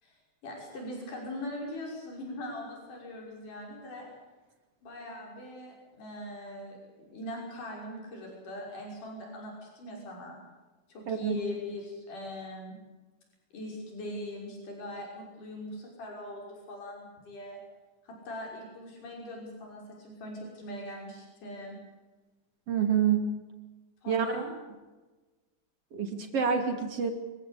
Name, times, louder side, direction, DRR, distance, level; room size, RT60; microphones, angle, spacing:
voice 1, 0.4-4.1 4.8-10.4 10.9-12.8 13.5-17.6 18.0-21.8 24.0-24.6, left 1 dB, 70° left, -1 dB, 7.4 m, -41 dB
voice 2, 11.1-11.4 22.7-23.3 24.1-24.5 25.9-27.1, right 7 dB, 50° right, 5 dB, 3.4 m, -27 dB
25.5 x 16.0 x 8.7 m, 1.2 s
omnidirectional pair, 3.8 m